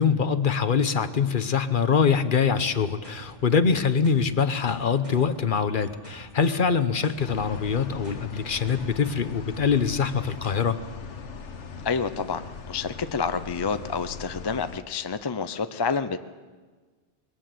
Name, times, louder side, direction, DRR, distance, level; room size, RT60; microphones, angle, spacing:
voice 1, 0.0-10.8, left 6 dB, 50° left, 11 dB, 1.0 m, -24 dB
sound 1, 2.5-10.5, right 2 dB, 35° right, 4.3 m, -48 dB
sound 2, 7.2-14.8, left 5 dB, 80° left, 1.4 m, -40 dB
voice 2, 11.8-16.2, left 5 dB, 30° left, 11 dB, 0.5 m, -28 dB
21.5 x 18.0 x 7.7 m, 1.4 s
omnidirectional pair, 1.2 m